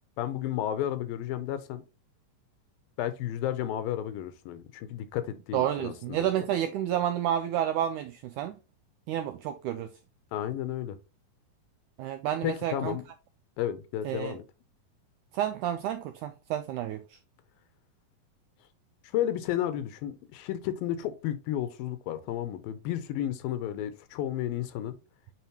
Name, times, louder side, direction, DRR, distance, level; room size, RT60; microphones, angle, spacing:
voice 1, 0.2-1.8 3.0-6.3 10.3-11.0 12.4-13.0 13.6-14.4 19.1-24.9, left 11 dB, 85° left, 2.5 m, -32 dB
voice 2, 5.5-8.6 9.1-9.9 12.0-13.0 14.1-14.4 15.3-17.0, right 11 dB, 85° right, 1.7 m, -30 dB
9.0 x 3.8 x 3.0 m
omnidirectional pair, 4.1 m